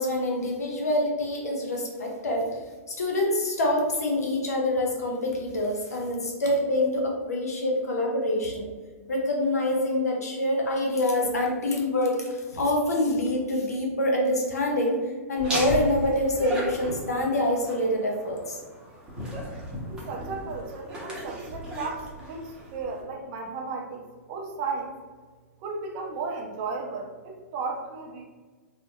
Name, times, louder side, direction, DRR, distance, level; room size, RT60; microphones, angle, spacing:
voice 1, 0.0-2.5 2.9-8.7 9.1-12.2 12.5-15.0 15.3-18.6, left 1 dB, 85° left, 0 dB, 0.6 m, -26 dB
Laughter, 15.4-23.0, equal, 10° right, 0.7 m, -36 dB
voice 2, 19.9-25.0 25.6-28.2, right 4 dB, 40° right, 1 dB, 0.5 m, -34 dB
2.8 x 2.0 x 2.3 m, 1.4 s
hypercardioid pair, 115°, 8 cm